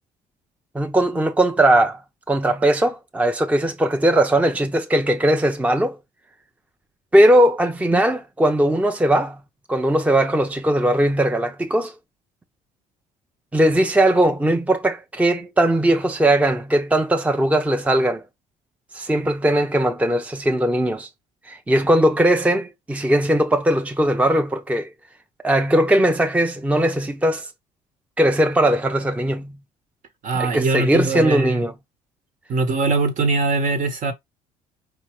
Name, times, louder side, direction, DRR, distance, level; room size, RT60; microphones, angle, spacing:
voice 1, 0.7-2.0 2.3-6.0 7.1-9.4 9.7-11.9 13.5-18.2 18.9-21.1 21.5-24.9 25.4-27.5 28.2-29.6 30.3-31.7, right 1 dB, 10° right, 0.6 m, -19 dB
voice 2, 30.2-31.6 32.5-34.1, right 3 dB, 55° right, 1.3 m, -21 dB
4.9 x 2.8 x 3.2 m
supercardioid pair, 70°, 15 cm